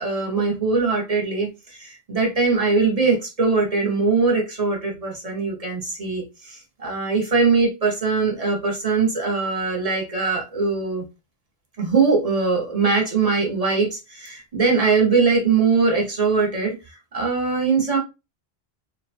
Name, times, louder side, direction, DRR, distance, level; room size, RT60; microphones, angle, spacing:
voice 1, 0.0-11.0 11.8-16.7 17.1-18.0, right 4 dB, 40° right, 0.8 m, -21 dB
2.9 x 2.1 x 2.5 m
omnidirectional pair, 1.0 m